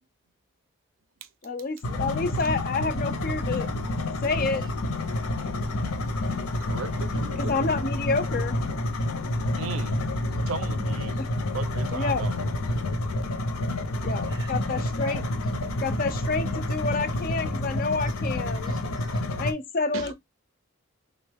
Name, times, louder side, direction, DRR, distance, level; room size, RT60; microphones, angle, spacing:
voice 1, 1.4-3.7 4.2-4.6 7.4-8.6 11.2-11.3 11.9-12.2 13.8-15.2 15.8-18.7 19.4-20.1, left 4 dB, 40° left, 0.4 m, -29 dB
sound 1, 1.8-19.5, left 1 dB, 85° left, 0.7 m, -29 dB
voice 2, 6.6-7.8 9.6-10.0 10.5-11.2 11.5-12.4 19.9-20.1, right 5 dB, 70° right, 0.5 m, -36 dB
voice 3, 14.3-15.5 18.0-18.1 18.6-19.2 19.9-20.1, right 3 dB, 20° right, 0.5 m, -47 dB
3.4 x 2.2 x 3.4 m
head